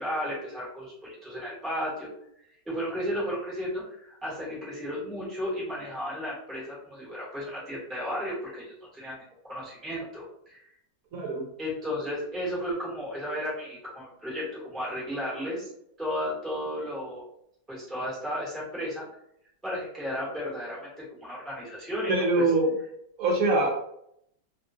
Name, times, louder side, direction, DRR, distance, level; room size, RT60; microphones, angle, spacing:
voice 1, 0.0-2.1 2.7-9.2 9.4-10.7 11.6-15.7 16.0-17.3 17.7-19.1 19.6-20.9 21.2-22.5, equal, ahead, -7 dB, 0.9 m, -34 dB
voice 2, 11.1-11.4 22.1-22.7 23.2-23.9, right 2 dB, 70° right, 0 dB, 0.8 m, -24 dB
2.9 x 2.2 x 2.5 m, 0.74 s
omnidirectional pair, 1.9 m